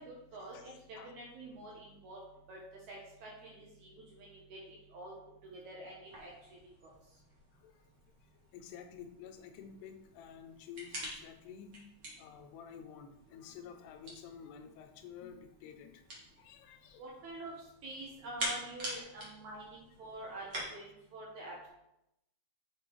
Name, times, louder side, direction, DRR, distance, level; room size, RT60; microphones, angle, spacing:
voice 1, 0.0-2.2 2.5-2.6 2.9-5.1 5.4-6.9 17.0-17.5 17.8-20.4 20.7-21.7, right 1 dB, 65° right, -3 dB, 2.0 m, -47 dB
sound 1, 6.0-20.6, equal, 40° right, 1.6 m, -47 dB
voice 2, 8.5-11.8 12.2-16.0 16.4-17.0, left 8 dB, 85° left, 7 dB, 2.8 m, -50 dB
6.2 x 5.6 x 4.6 m, 0.85 s
omnidirectional pair, 4.7 m